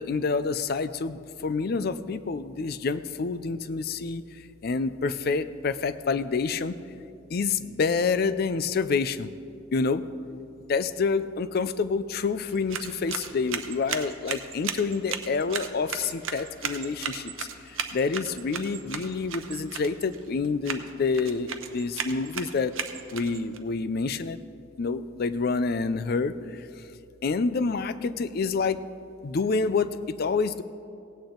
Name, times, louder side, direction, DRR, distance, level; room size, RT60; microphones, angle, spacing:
voice 1, 0.0-4.2 4.6-6.7 7.3-9.3 9.7-10.0 10.7-22.7 23.1-24.4 24.8-26.7 27.2-28.8 29.2-30.6, left 4 dB, 50° left, 14 dB, 0.4 m, -28 dB
sound 1, 12.4-23.6, right 7 dB, 75° right, 0.7 m, -36 dB
17.5 x 8.8 x 3.8 m, 2.5 s
head